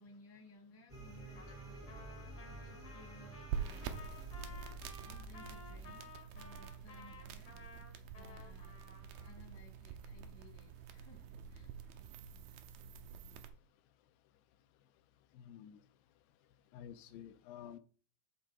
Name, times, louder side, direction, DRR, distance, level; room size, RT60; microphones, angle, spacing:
voice 1, 0.0-4.2 5.0-7.5 8.1-8.8 9.2-11.2 11.5-11.7, left 2 dB, 15° left, 2 dB, 0.8 m, -60 dB
sound 1, 0.9-5.9, right 2 dB, 15° right, 0.7 m, -50 dB
Trumpet, 1.3-9.4, left 3 dB, 55° left, 1.1 m, -56 dB
sound 2, 3.5-13.5, right 7 dB, 75° right, 2.4 m, -47 dB
voice 2, 15.3-15.8 16.7-17.8, left 9 dB, 80° left, 10 dB, 2.2 m, -51 dB
11.0 x 3.8 x 4.9 m, 0.39 s
omnidirectional pair, 4.6 m